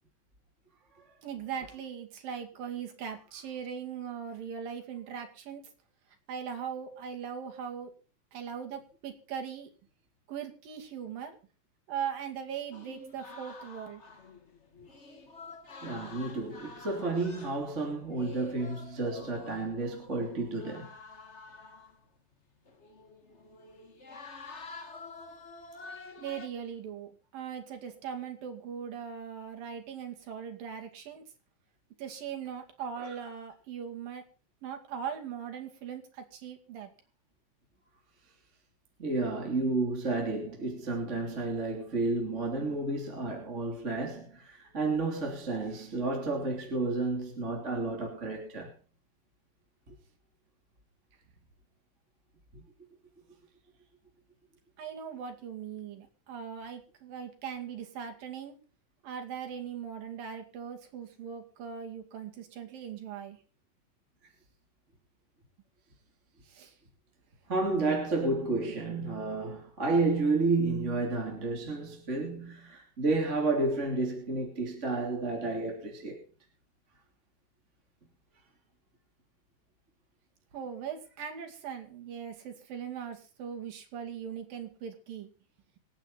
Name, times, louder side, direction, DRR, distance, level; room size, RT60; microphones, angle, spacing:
voice 1, 1.2-5.7 6.3-7.9 8.3-9.7 10.3-11.4 11.9-14.0 26.1-31.2 32.0-34.2 34.6-36.9 54.8-58.6 59.0-63.4 66.4-66.8 80.5-85.3, right 7 dB, 85° right, 4.1 m, -40 dB
sound 1, 12.7-22.4 22.6-26.5, left 3 dB, 35° left, 1.1 m, -48 dB
voice 2, 15.8-20.9 33.0-33.1 39.0-48.7 49.9-50.0 52.5-52.6 67.5-76.2, right 3 dB, 20° right, 3.1 m, -31 dB
26.0 x 9.0 x 4.1 m
omnidirectional pair, 3.9 m